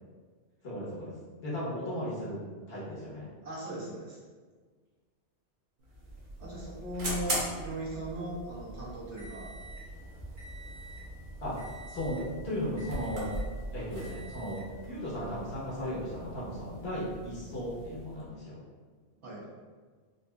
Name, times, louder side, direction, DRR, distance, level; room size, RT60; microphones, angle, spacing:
voice 1, 0.6-1.1 1.4-2.4 2.7-3.3 11.4-13.3 13.7-18.6, equal, 60° left, -8 dB, 1.3 m, -36 dB
voice 2, 3.4-4.2 6.4-9.5 19.2-19.4, right 1 dB, 80° right, -7 dB, 1.3 m, -38 dB
sound 1, 5.8-18.2, right 1 dB, 50° right, 0.8 m, -41 dB
4.0 x 2.6 x 2.2 m, 1.5 s
omnidirectional pair, 1.2 m